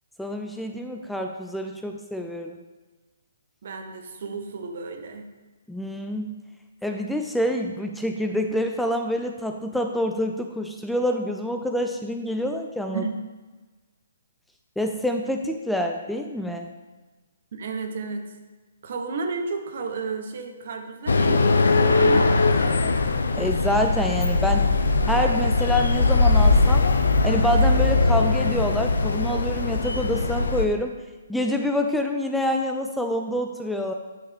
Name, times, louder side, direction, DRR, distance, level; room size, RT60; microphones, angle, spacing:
voice 1, 0.2-2.6 5.7-6.3 6.8-13.0 14.8-16.7 23.4-24.7 25.1-26.8 27.2-30.9 31.3-33.9, equal, ahead, 3 dB, 0.5 m, -26 dB
voice 2, 3.6-5.3 12.9-13.2 17.5-18.4 18.8-23.0, right 4 dB, 55° right, 6 dB, 1.1 m, -33 dB
sound 1, 21.1-30.7, left 3 dB, 75° left, 0.6 m, -20 dB
9.5 x 6.3 x 3.6 m, 1.3 s
figure-of-eight pair, 130°, 0 cm